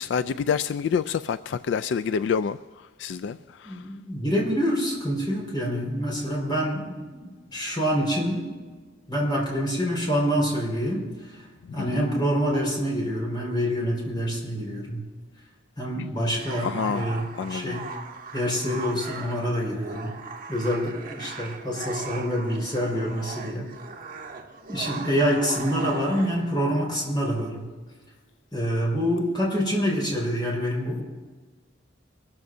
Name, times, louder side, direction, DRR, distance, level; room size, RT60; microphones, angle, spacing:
voice 1, 0.0-3.9 11.9-12.1 16.6-17.8, left 6 dB, 70° left, 0.3 m, -28 dB
voice 2, 3.6-8.6 9.1-11.0 11.7-15.0 15.8-17.8 18.3-20.1 20.5-23.6 24.7-27.6 28.5-31.0, equal, 25° left, 4.8 m, -26 dB
sound 1, 16.3-26.5, right 4 dB, 45° right, 1.6 m, -39 dB
23.0 x 14.0 x 2.7 m
head